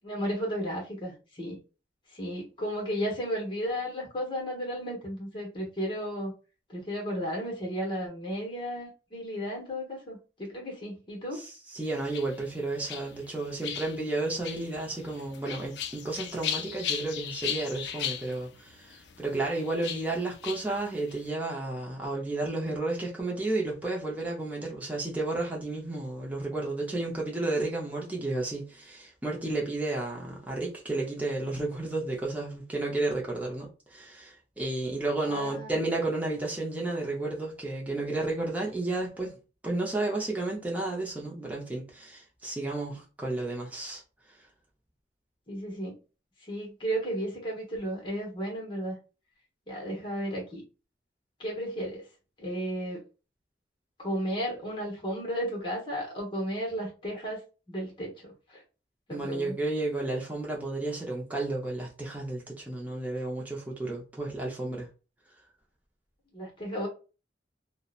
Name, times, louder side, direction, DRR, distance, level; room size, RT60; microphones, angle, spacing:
voice 1, 0.0-1.6 2.1-6.3 6.7-11.4 35.3-35.8 45.5-45.9 46.4-49.0 49.7-50.6 51.4-52.0 52.4-53.0 54.0-57.4 57.7-58.6 59.1-59.5 66.3-66.9, equal, 30° left, 0.9 m, -34 dB
voice 2, 11.3-39.4 39.6-44.0 44.3-44.5 59.1-64.9, right 2 dB, 10° right, 0.5 m, -32 dB
sound 1, 11.8-21.3, left 8 dB, 65° left, 0.4 m, -38 dB
2.7 x 2.0 x 2.3 m
head